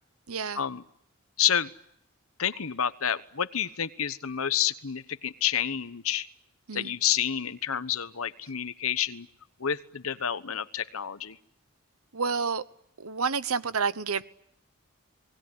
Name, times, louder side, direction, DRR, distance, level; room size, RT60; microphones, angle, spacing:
voice 1, 0.3-0.6 6.7-6.9 12.1-12.6 13.0-14.2, right 5 dB, 85° right, 15 dB, 1.1 m, -29 dB
voice 2, 1.4-1.7 2.4-6.3 6.7-9.3 9.6-11.4, left 9 dB, 75° left, 14 dB, 1.1 m, -29 dB
29.0 x 20.0 x 9.6 m, 0.75 s
head